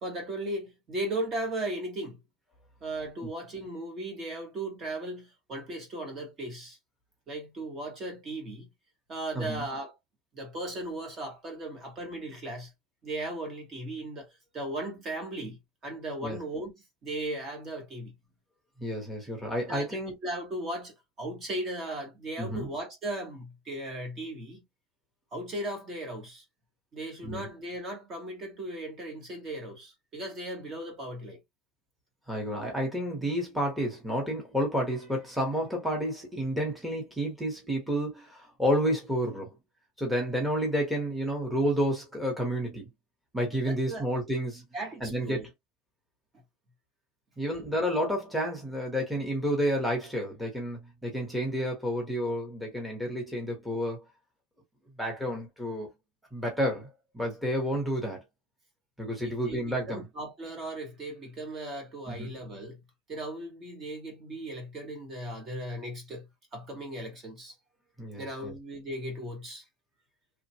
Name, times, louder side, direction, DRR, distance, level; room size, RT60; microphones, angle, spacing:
voice 1, 0.0-2.2 2.8-6.8 7.3-8.7 9.1-10.0 10.3-12.7 13.0-14.3 14.5-15.6 15.8-16.7 17.0-18.1 19.7-24.6 25.3-26.4 26.9-31.4 43.7-44.1 44.7-45.5 59.2-62.8 63.1-66.2 66.5-67.5 68.2-69.6, right 1 dB, 25° right, 1.0 m, -37 dB
voice 2, 18.8-20.1 22.4-22.7 27.2-27.5 32.3-39.5 40.0-42.9 43.3-44.7 45.0-45.5 47.4-54.0 55.0-55.9 56.3-56.9 57.1-58.2 59.0-60.0 62.1-62.3 68.0-68.5, equal, 5° right, 1.0 m, -30 dB
3.0 x 2.2 x 2.8 m
cardioid pair, 175°, 0 cm